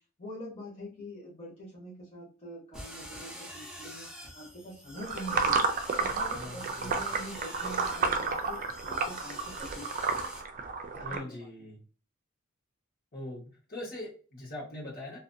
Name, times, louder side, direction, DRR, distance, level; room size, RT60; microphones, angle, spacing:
voice 1, 0.0-4.1 4.3-5.7 6.0-10.3 10.9-11.7, equal, 30° left, -7 dB, 1.2 m, -45 dB
sound 1, 2.7-10.4, equal, 5° right, 0.6 m, -46 dB
sound 2, 5.0-11.2, right 4 dB, 40° right, 0.4 m, -31 dB
voice 2, 6.3-6.9 11.0-11.8 13.1-15.2, left 1 dB, 45° left, -4 dB, 1.3 m, -42 dB
2.7 x 2.5 x 2.6 m, 0.38 s
head